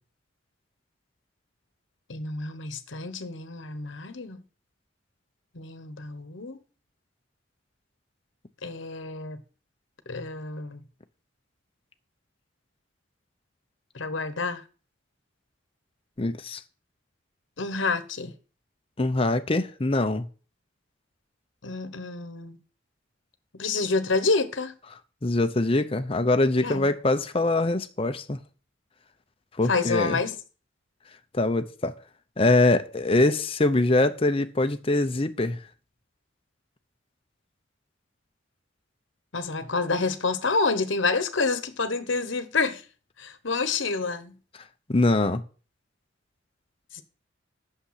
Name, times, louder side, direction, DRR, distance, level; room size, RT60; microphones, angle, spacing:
voice 1, 2.1-4.4 5.5-6.6 8.6-9.4 10.1-10.8 13.9-14.6 17.6-18.3 21.6-22.6 23.5-24.7 26.6-26.8 29.7-30.3 39.3-42.8 43.2-44.3 46.9-47.0, left 4 dB, 70° left, 1.0 m, -28 dB
voice 2, 16.2-16.6 19.0-20.3 25.2-28.4 29.6-30.2 31.3-31.9 32.4-35.6 44.9-45.4, left 2 dB, 30° left, 0.7 m, -23 dB
8.8 x 6.8 x 5.7 m
head